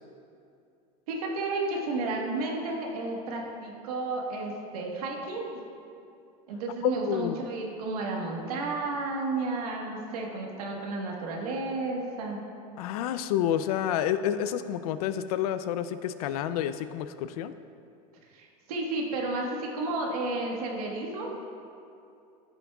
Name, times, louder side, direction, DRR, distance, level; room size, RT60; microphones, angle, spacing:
voice 1, 1.1-5.6 6.5-12.4 18.3-21.3, right 2 dB, 90° right, 0 dB, 1.5 m, -32 dB
voice 2, 6.8-7.4 12.8-17.5, left 10 dB, 80° left, 12 dB, 0.5 m, -29 dB
14.0 x 6.0 x 2.4 m, 2.5 s
supercardioid pair, 125°, 19 cm